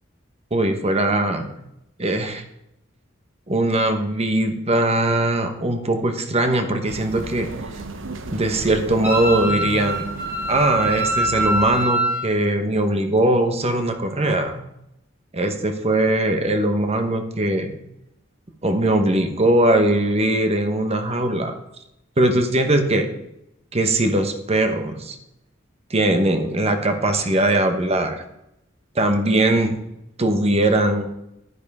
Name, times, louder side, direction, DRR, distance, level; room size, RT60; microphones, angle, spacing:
voice 1, 0.5-1.5 2.0-2.4 3.5-7.5 8.3-10.0 10.5-14.6 15.3-17.7 18.6-21.5 22.2-23.1 23.7-25.2 25.9-28.2 28.9-29.8 30.2-31.1, right 1 dB, 35° right, 7 dB, 1.1 m, -20 dB
sound 1, 6.9-11.9, right 3 dB, 70° right, 0.8 m, -35 dB
Wind instrument woodwind instrument, 9.0-12.3, right 1 dB, 10° right, 3.6 m, -24 dB
11.0 x 10.0 x 3.6 m, 0.83 s
head